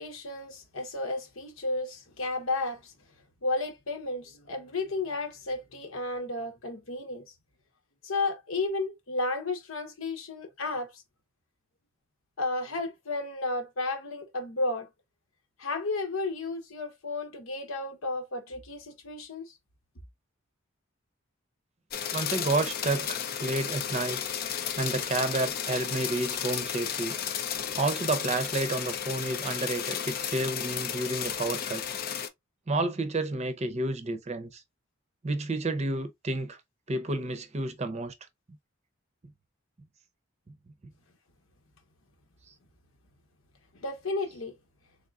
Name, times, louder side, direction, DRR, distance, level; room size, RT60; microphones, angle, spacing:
voice 1, 0.0-2.9 3.4-7.3 8.0-11.0 12.4-14.9 15.6-19.5 43.7-44.5, left 2 dB, 80° left, 1.0 m, -33 dB
sound 1, 21.9-32.3, left 8 dB, 50° left, 0.5 m, -33 dB
voice 2, 22.1-24.2 24.8-27.2 27.8-31.8 32.7-34.6 35.2-36.6 36.9-38.1, right 2 dB, 35° right, 0.6 m, -30 dB
3.7 x 3.6 x 2.3 m
head